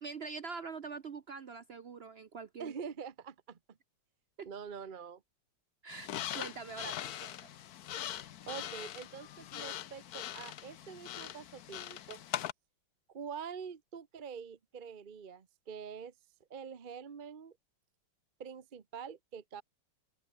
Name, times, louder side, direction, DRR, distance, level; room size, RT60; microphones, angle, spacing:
voice 1, 0.0-2.7 4.4-4.5 5.8-7.5, right 4 dB, 90° right, 0.5 m, -44 dB
voice 2, 2.6-3.8 4.4-5.2 8.5-12.2 13.1-16.1 16.5-17.6 18.4-19.6, right 6 dB, 45° right, 0.6 m, -45 dB
sound 1, 5.9-12.5, left 11 dB, 60° left, 1.0 m, -42 dB
open air
omnidirectional pair, 2.4 m